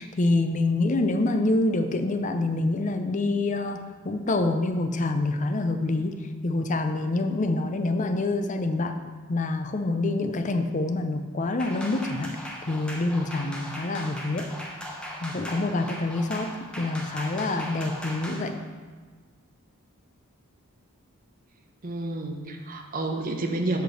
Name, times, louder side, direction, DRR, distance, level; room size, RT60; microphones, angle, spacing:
voice 1, 0.0-3.8 4.0-6.1 6.4-9.0 9.3-14.5 15.2-18.5, left 2 dB, 35° left, 7 dB, 0.5 m, -26 dB
sound 1, 11.6-18.5, equal, 5° left, 1.0 m, -38 dB
voice 2, 21.8-23.8, right 2 dB, 40° right, 4 dB, 0.8 m, -29 dB
7.9 x 4.5 x 6.5 m, 1.5 s
head